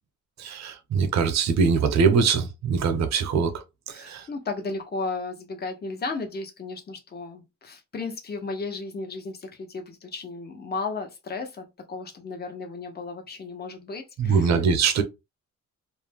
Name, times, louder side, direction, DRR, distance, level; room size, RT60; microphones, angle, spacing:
voice 1, 0.4-4.2 14.2-15.0, right 5 dB, 65° right, 0.7 m, -23 dB
voice 2, 3.9-14.5, left 3 dB, 35° left, 0.8 m, -34 dB
2.5 x 2.1 x 3.3 m
cardioid pair, 90°, 30 cm